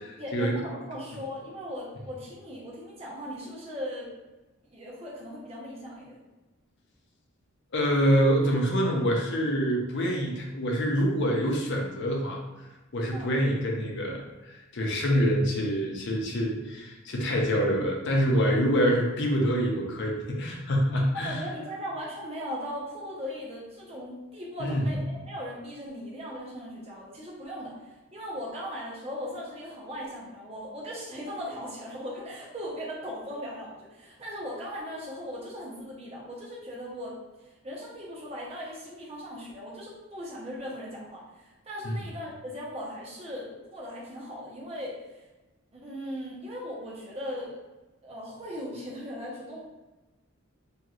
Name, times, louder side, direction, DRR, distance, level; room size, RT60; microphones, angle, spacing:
voice 1, 0.2-4.1 4.6-6.2 13.1-13.3 21.2-27.7 28.1-37.1 37.6-41.2 41.6-45.0 45.7-47.6 48.0-49.6, equal, 30° right, -5 dB, 0.7 m, -38 dB
voice 2, 7.7-12.4 12.9-21.5 24.6-24.9 41.8-42.0, equal, 55° left, 0 dB, 0.6 m, -26 dB
3.0 x 2.7 x 2.4 m, 1.1 s
head